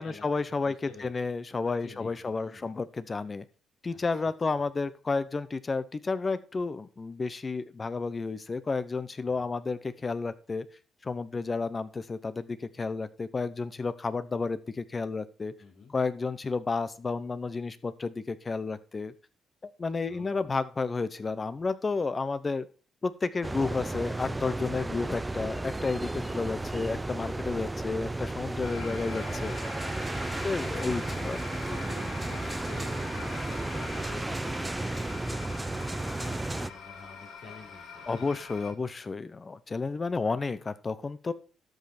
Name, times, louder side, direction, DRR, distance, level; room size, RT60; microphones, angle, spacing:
voice 1, 0.0-3.4 3.8-10.7 11.0-15.5 15.9-19.1 19.6-22.7 23.0-29.6 30.4-31.4 38.1-41.3, left 4 dB, 30° left, 15 dB, 0.8 m, -31 dB
voice 2, 0.6-1.3 1.8-2.7 3.9-4.3 15.6-15.9 20.1-20.5 26.2-26.7 31.0-38.4, left 4 dB, 60° left, 0 dB, 3.9 m, -49 dB
sound 1, 23.4-36.7, right 2 dB, 15° right, 0.5 m, -33 dB
sound 2, 28.6-38.7, left 5 dB, 85° left, 3.8 m, -44 dB
12.5 x 5.3 x 4.3 m, 0.38 s
cardioid pair, 90°, 0 cm